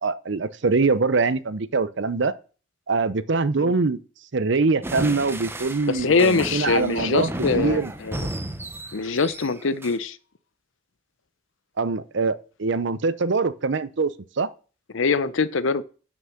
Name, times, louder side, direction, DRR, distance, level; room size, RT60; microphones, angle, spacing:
voice 1, 0.0-2.3 2.9-4.0 4.3-7.9 11.8-14.1 14.4-14.5, right 4 dB, 65° right, 0.7 m, -23 dB
sound 1, 4.8-10.0, right 1 dB, 10° right, 0.9 m, -33 dB
voice 2, 5.9-8.2 8.9-10.2 14.9-15.8, left 4 dB, 80° left, 0.7 m, -23 dB
9.5 x 6.0 x 6.5 m
head